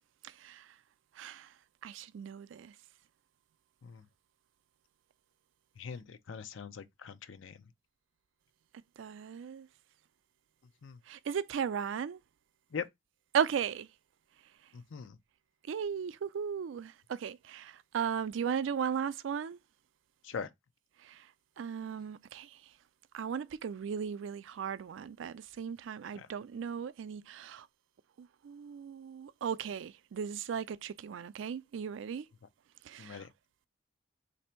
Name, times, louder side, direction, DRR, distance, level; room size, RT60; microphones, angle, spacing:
voice 1, 0.2-0.7 1.2-1.5 1.8-2.7 9.0-9.7 11.1-12.2 13.3-13.9 15.7-19.6 21.0-21.3 21.6-22.6 23.1-27.7 28.2-32.3 32.8-33.3, right 7 dB, 80° right, 0.3 m, -36 dB
voice 2, 5.8-7.6 10.8-11.0 12.7-12.8 14.7-15.2 20.2-20.5 26.1-26.3 33.0-33.3, left 6 dB, 85° left, 0.5 m, -42 dB
3.3 x 2.7 x 4.3 m
head